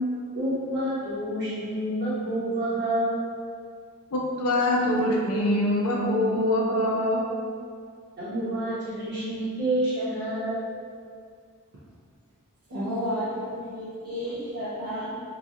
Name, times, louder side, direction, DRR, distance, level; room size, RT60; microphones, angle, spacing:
voice 1, 0.3-3.2 8.2-10.6, right 1 dB, 50° right, -12 dB, 1.2 m, -28 dB
voice 2, 4.1-7.2, left 1 dB, 80° left, -2 dB, 0.5 m, -24 dB
voice 3, 12.7-15.2, equal, 75° right, -12 dB, 0.7 m, -31 dB
3.0 x 2.5 x 2.4 m, 2.2 s
head